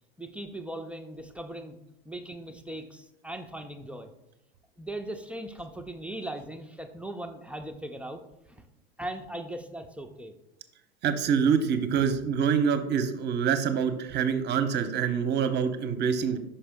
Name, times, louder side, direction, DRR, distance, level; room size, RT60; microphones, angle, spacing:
voice 1, 0.2-1.8 2.1-4.1 4.8-8.2 8.5-8.6 9.0-10.3, right 1 dB, 5° right, 4 dB, 0.4 m, -39 dB
voice 2, 11.0-16.4, right 7 dB, 35° right, 9 dB, 0.7 m, -26 dB
5.6 x 5.0 x 3.5 m, 0.85 s
hypercardioid pair, 90°, 31 cm